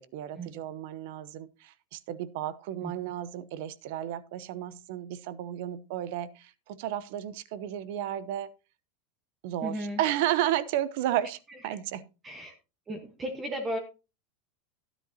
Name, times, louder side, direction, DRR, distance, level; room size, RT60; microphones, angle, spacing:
voice 1, 0.0-8.5 9.4-11.4 11.6-12.1, right 12 dB, 60° right, 18 dB, 0.7 m, -32 dB
voice 2, 9.6-10.0 12.2-12.5 12.9-13.8, equal, 15° right, 5 dB, 1.2 m, -34 dB
12.5 x 10.0 x 2.8 m, 0.30 s
supercardioid pair, 155°, 0 cm